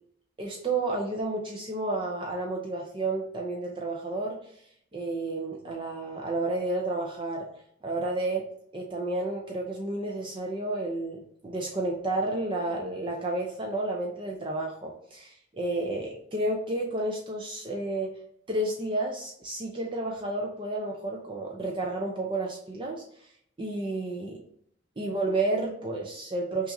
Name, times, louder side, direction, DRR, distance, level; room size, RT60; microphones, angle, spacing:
voice 1, 0.4-4.5 4.9-7.5 7.8-18.2 18.5-23.3 23.6-24.4 25.0-26.7, right 2 dB, 25° right, 0 dB, 0.5 m, -31 dB
5.7 x 2.5 x 2.7 m, 0.69 s
head